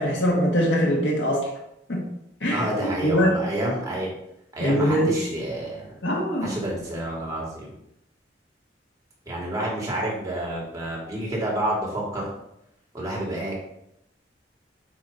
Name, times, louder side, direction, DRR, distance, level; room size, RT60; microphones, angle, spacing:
voice 1, 0.0-1.5 1.9-2.0 2.4-3.3 4.6-5.1 6.0-6.5, equal, 80° left, -2 dB, 1.7 m, -22 dB
voice 2, 2.5-4.1 4.5-5.9 6.4-7.7 9.3-12.3 12.9-13.6, right 1 dB, 20° right, -4 dB, 2.0 m, -29 dB
8.4 x 3.0 x 4.0 m, 0.80 s
head